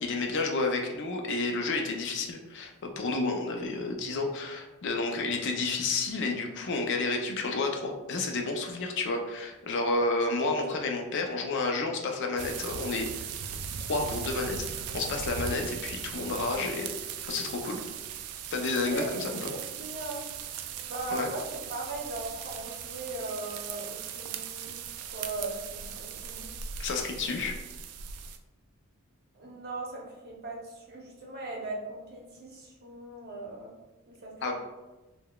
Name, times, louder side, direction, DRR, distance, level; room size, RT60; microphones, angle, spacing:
voice 1, 0.0-13.3 13.9-16.9 17.2-17.8 18.5-19.5 21.1-21.3 26.8-27.5 34.4-34.5, left 3 dB, 55° left, 3 dB, 0.4 m, -30 dB
sound 1, 12.4-28.4, right 7 dB, 90° right, 0.3 m, -38 dB
voice 2, 19.5-20.2 20.9-21.4 21.7-24.7 25.1-26.5 27.2-27.3 29.3-33.8 34.1-34.5, right 2 dB, 45° right, -2 dB, 0.7 m, -39 dB
3.7 x 2.1 x 2.2 m, 1.1 s
head